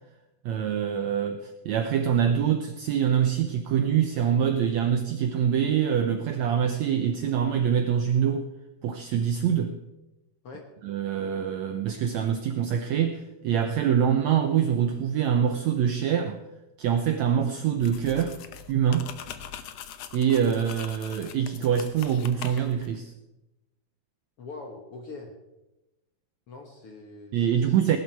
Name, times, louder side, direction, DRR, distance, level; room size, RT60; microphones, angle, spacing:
voice 1, 0.4-8.5 8.8-9.8 10.8-16.4 16.8-18.4 18.7-19.2 20.1-23.1 27.3-28.0, right 8 dB, 75° right, 7 dB, 1.6 m, -25 dB
sound 1, 17.8-22.9, left 9 dB, 75° left, 1.5 m, -42 dB
voice 2, 24.4-25.3 26.5-28.0, left 3 dB, 60° left, 3 dB, 1.7 m, -43 dB
18.5 x 11.5 x 4.6 m, 0.99 s
omnidirectional pair, 4.1 m